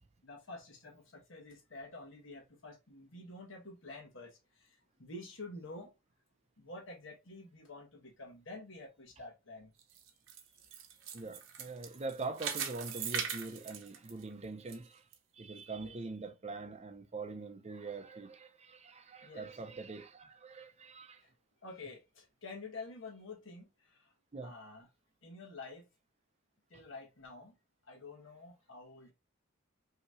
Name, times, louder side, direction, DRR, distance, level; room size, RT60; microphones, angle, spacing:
voice 1, 0.2-5.9 6.6-9.7 15.8-15.9 19.2-19.6 21.2-21.3 21.6-24.1 24.4-24.9 25.2-25.9 26.7-27.5 27.9-29.1, left 2 dB, 65° left, 1.4 m, -49 dB
sound 1, 9.8-14.7 15.1-15.2 15.8-15.9, right 7 dB, 65° right, 0.9 m, -40 dB
voice 2, 11.1-15.1 15.3-21.2 24.3-24.5 26.7-26.8, right 3 dB, 30° right, 0.6 m, -43 dB
5.5 x 2.9 x 2.6 m
head